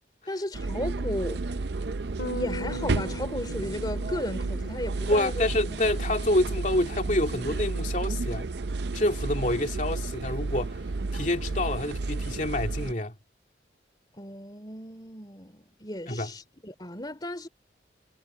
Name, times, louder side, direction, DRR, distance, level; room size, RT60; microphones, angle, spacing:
voice 1, 0.3-1.4 2.3-5.8 14.1-17.5, left 1 dB, 20° left, 3.2 m, -35 dB
sound 1, 0.5-12.9, right 3 dB, 65° right, 0.6 m, -32 dB
Bass guitar, 2.2-8.4, left 1 dB, 75° left, 2.0 m, -42 dB
voice 2, 5.1-8.5 8.9-10.8 11.1-13.1 16.1-16.3, left 1 dB, 40° left, 2.7 m, -27 dB
head